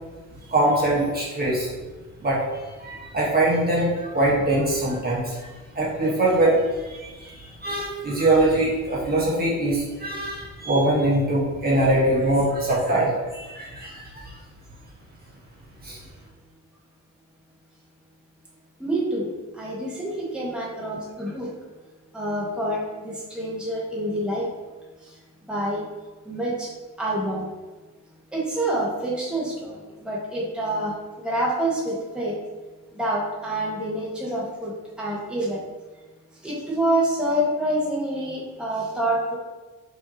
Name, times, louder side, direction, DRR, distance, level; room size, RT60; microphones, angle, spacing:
voice 1, 0.5-1.7 2.2-5.5 5.7-14.3 15.8-16.0, right 1 dB, 30° right, -5 dB, 1.3 m, -23 dB
voice 2, 18.8-21.5 22.1-24.5 25.5-25.9 26.2-26.7 27.0-27.5 28.3-32.3 33.0-35.6 36.4-39.4, right 1 dB, 5° right, -6 dB, 1.3 m, -27 dB
5.5 x 2.9 x 2.8 m, 1.3 s
cardioid pair, 90°, 30 cm